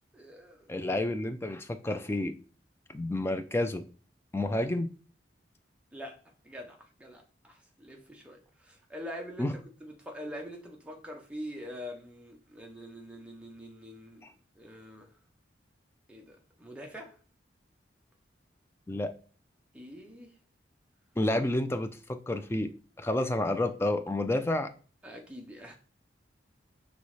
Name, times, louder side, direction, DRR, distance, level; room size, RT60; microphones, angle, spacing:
voice 1, 0.1-0.7 5.9-6.2 6.4-14.2 14.6-15.1 16.1-17.2 19.7-20.3 25.0-25.8, equal, 5° right, 0.7 m, -44 dB
voice 2, 0.7-2.4 2.9-3.8 4.3-4.9 9.4-9.5 14.2-14.3 18.9-19.1 21.2-22.7 23.0-24.7, left 1 dB, 15° left, 0.3 m, -30 dB
5.4 x 3.1 x 3.2 m
head